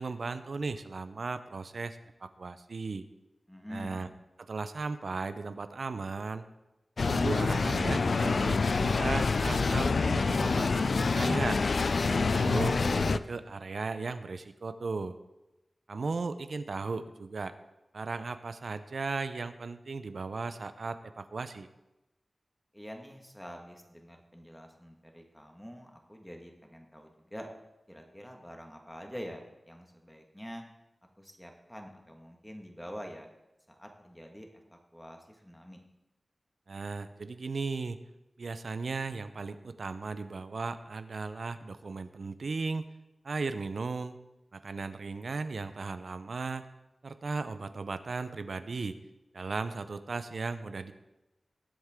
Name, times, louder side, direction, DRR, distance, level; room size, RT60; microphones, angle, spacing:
voice 1, 0.0-3.0 3.7-4.1 4.5-6.4 7.0-11.6 12.3-15.2 15.9-17.5 17.9-21.7 36.7-38.0 38.4-42.9 43.2-44.2 44.5-46.6 47.0-48.9 49.3-50.9, right 4 dB, 70° right, 11 dB, 0.6 m, -36 dB
voice 2, 3.5-4.1 12.0-12.3 22.7-27.5 27.9-30.6 31.2-33.3 33.7-35.8, equal, 5° left, 2 dB, 1.6 m, -46 dB
sound 1, 7.0-13.2, left 4 dB, 70° left, 0.3 m, -27 dB
19.5 x 7.9 x 3.7 m, 0.97 s
wide cardioid pair, 100°, 0 cm